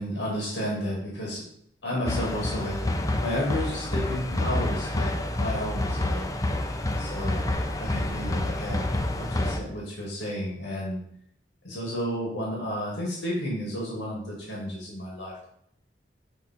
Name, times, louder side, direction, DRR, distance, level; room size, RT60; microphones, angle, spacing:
voice 1, 0.0-1.4 1.8-2.8 3.2-5.1 5.4-6.3 7.0-7.5 7.8-8.8 9.2-11.0 11.6-15.4, equal, 70° left, -4 dB, 2.0 m, -32 dB
sound 1, 2.1-9.6, left 1 dB, 20° left, 0.5 m, -28 dB
7.1 x 3.7 x 4.3 m, 0.70 s
head